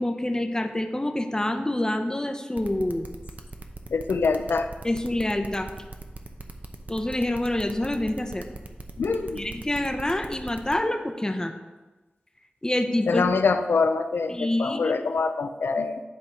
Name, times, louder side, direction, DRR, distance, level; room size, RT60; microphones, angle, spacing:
voice 1, 0.0-3.1 4.8-5.7 6.9-8.4 9.4-11.5 12.6-13.3 14.3-14.9, left 1 dB, 20° left, 6 dB, 0.7 m, -27 dB
sound 1, 2.6-10.7, right 3 dB, 45° right, 0.7 m, -40 dB
voice 2, 3.9-4.7 9.0-9.4 13.1-16.0, left 4 dB, 85° left, 8 dB, 0.5 m, -24 dB
10.0 x 3.7 x 4.3 m, 1.2 s
wide cardioid pair, 55°, 4 cm